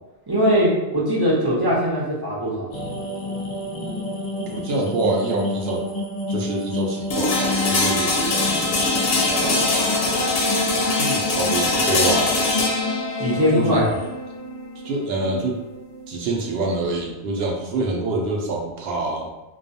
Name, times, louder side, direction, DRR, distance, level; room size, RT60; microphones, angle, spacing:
voice 1, 0.3-2.7 13.2-14.0, equal, 25° right, -7 dB, 0.6 m, -21 dB
sound 1, 2.7-14.1, left 3 dB, 50° left, 0.5 m, -29 dB
voice 2, 4.5-5.9 6.3-8.9 9.3-10.4 10.9-12.4 13.5-13.9 14.8-15.6 16.1-19.3, right 2 dB, 75° right, 1 dB, 0.8 m, -26 dB
sound 2, 7.1-17.0, left 2 dB, 70° left, 0.8 m, -23 dB
2.3 x 2.3 x 2.6 m, 1.0 s
omnidirectional pair, 1.1 m